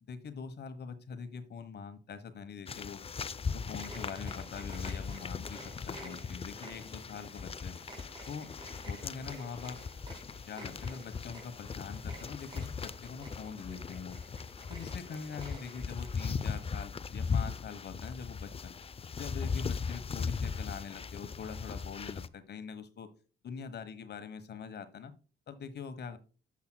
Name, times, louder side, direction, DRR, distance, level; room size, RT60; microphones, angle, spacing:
voice 1, 0.1-3.0 3.5-7.8 8.3-8.5 8.8-9.8 10.5-14.2 14.7-18.7 19.2-23.1 23.4-25.1 25.5-26.2, left 6 dB, 55° left, 10 dB, 1.2 m, -43 dB
sound 1, 2.7-22.3, left 5 dB, 30° left, 0.5 m, -38 dB
sound 2, 3.6-16.8, right 1 dB, 25° right, 4.4 m, -52 dB
10.5 x 7.3 x 2.3 m, 0.35 s
cardioid pair, 90°, 20 cm